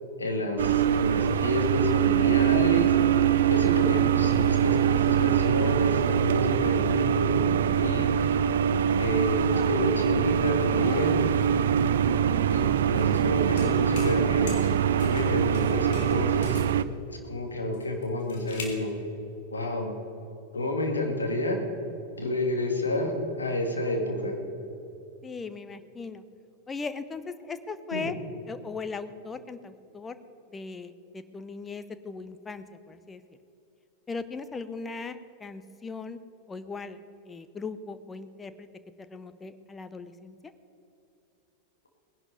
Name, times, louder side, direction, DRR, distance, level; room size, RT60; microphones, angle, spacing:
voice 1, 0.2-2.9 3.5-8.3 9.0-11.1 12.5-14.7 15.0-16.6 17.1-18.9 19.5-19.9 20.5-21.6 22.2-24.3 27.9-28.1, left 1 dB, 75° left, 3 dB, 2.1 m, -29 dB
sound 1, 0.6-16.8, right 9 dB, 60° right, 0.5 m, -23 dB
voice 2, 10.8-12.0 25.2-26.2 26.7-28.1 28.5-30.2 30.5-33.2 34.1-36.2 36.5-37.0 37.3-38.7 39.1-40.3, left 4 dB, 15° left, 12 dB, 0.8 m, -38 dB
sound 2, 12.9-13.2 13.6-14.2 14.5-15.3 15.5-16.7 17.7-18.8, left 5 dB, 55° left, 2.4 m, -43 dB
19.0 x 11.0 x 5.3 m, 2.9 s
figure-of-eight pair, 90°, 0 cm